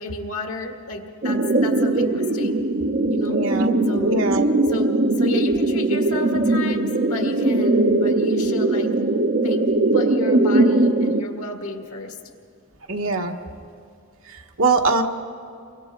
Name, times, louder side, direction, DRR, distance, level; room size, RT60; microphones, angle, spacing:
voice 1, 0.0-2.5 3.1-3.4 3.9-4.2 4.7-8.9 9.4-12.2, left 2 dB, 90° left, 3 dB, 2.0 m, -32 dB
sound 1, 1.2-11.2, right 2 dB, 45° right, 0.8 m, -20 dB
voice 2, 3.3-3.7 4.0-4.5 12.9-13.3 14.2-15.0, right 3 dB, 70° right, 3 dB, 1.4 m, -22 dB
29.5 x 23.5 x 3.8 m, 2.5 s
head